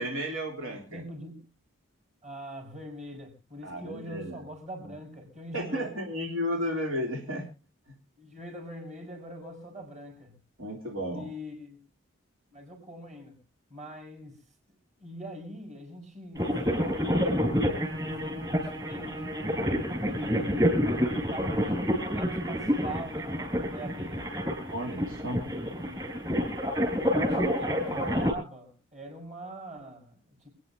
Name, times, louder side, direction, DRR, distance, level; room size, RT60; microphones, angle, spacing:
voice 1, 0.0-1.0 3.6-4.4 5.5-7.4 10.6-11.3 24.7-25.4, equal, 80° right, 0 dB, 3.6 m, -33 dB
voice 2, 0.6-1.4 2.2-5.9 8.2-10.4 11.1-11.8 12.5-13.4 13.7-14.3 15.0-19.2 20.0-24.3 25.3-26.1 26.9-30.5, equal, 35° right, 2 dB, 6.0 m, -43 dB
sound 1, 16.3-28.3, equal, 20° right, 4.8 m, -28 dB
28.0 x 9.8 x 2.9 m, 0.30 s
head